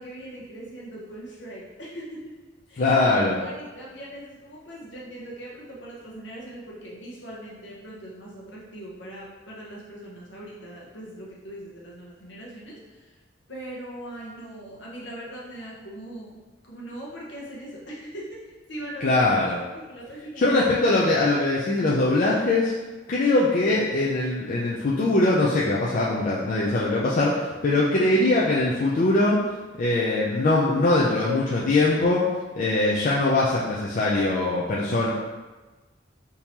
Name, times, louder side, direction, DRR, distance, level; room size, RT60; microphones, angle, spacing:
voice 1, 0.0-2.3 2.7-3.0 3.3-13.1 13.5-19.2 19.7-20.6 27.8-27.9, right 1 dB, 65° left, -4 dB, 0.9 m, -40 dB
voice 2, 2.8-3.4 19.0-19.6 20.4-22.7 23.1-29.4 29.8-32.2 32.6-35.1, left 2 dB, 45° left, -6 dB, 0.4 m, -22 dB
3.6 x 2.8 x 2.9 m, 1.2 s
head